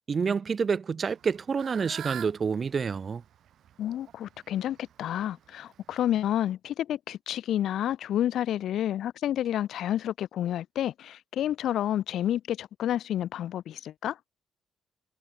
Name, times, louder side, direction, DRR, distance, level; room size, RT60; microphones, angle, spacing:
voice 1, 0.1-3.2, right 5 dB, 40° right, 2.8 m, -28 dB
Fowl / Bird, 1.0-6.3, right 10 dB, 70° right, 5.0 m, -46 dB
voice 2, 3.8-14.2, left 11 dB, 75° left, 0.9 m, -30 dB
cardioid pair, 90°, 0 cm